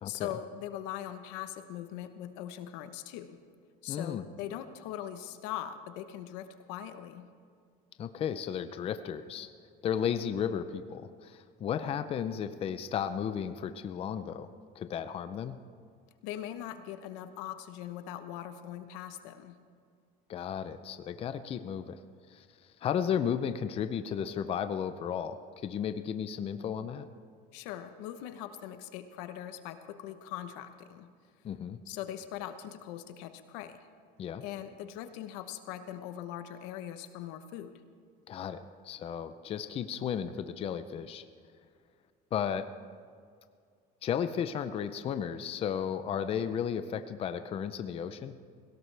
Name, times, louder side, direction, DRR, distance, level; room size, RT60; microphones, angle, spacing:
voice 1, 0.0-3.4 3.8-7.3 16.2-19.6 27.5-31.1 31.9-33.9 34.4-37.8, left 11 dB, 85° left, 9 dB, 1.0 m, -41 dB
voice 2, 3.9-4.3 8.0-9.5 9.8-14.5 14.8-15.6 20.3-22.0 22.3-22.5 22.8-27.1 31.4-31.8 34.2-34.4 38.3-41.2 42.3-42.7 44.0-48.4, left 8 dB, 30° left, 10 dB, 0.5 m, -34 dB
17.5 x 17.0 x 3.4 m, 2.1 s
cardioid pair, 135°, 18 cm